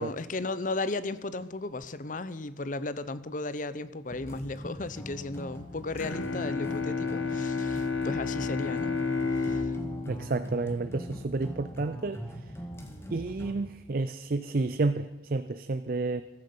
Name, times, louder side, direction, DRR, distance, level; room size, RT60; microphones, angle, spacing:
voice 1, 0.0-8.9 9.3-9.8, left 2 dB, 45° left, 0.7 m, -35 dB
sound 1, 4.1-13.5, equal, 15° left, 1.9 m, -42 dB
Bowed string instrument, 5.9-11.6, left 4 dB, 85° left, 1.5 m, -32 dB
voice 2, 10.1-12.2 13.1-16.2, right 3 dB, 50° right, 0.5 m, -30 dB
15.0 x 13.5 x 5.4 m
head